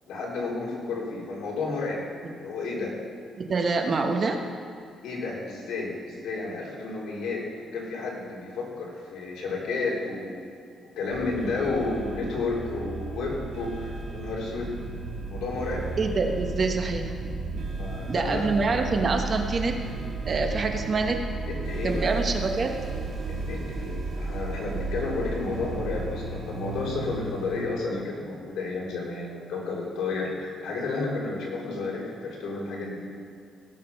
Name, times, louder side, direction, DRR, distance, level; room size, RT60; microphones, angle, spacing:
voice 1, 0.1-2.9 5.0-10.5 11.0-14.7 15.3-15.9 17.8-18.4 21.5-22.1 23.2-33.1, left 3 dB, 90° left, -4 dB, 3.5 m, -31 dB
voice 2, 3.4-4.4 16.0-17.1 18.1-19.8 20.3-21.2 21.8-22.8, right 3 dB, 30° right, 4 dB, 1.0 m, -26 dB
sound 1, 11.1-27.7, right 3 dB, 75° right, 3.2 m, -34 dB
17.0 x 7.4 x 5.7 m, 2.3 s
cardioid pair, 180°, 0 cm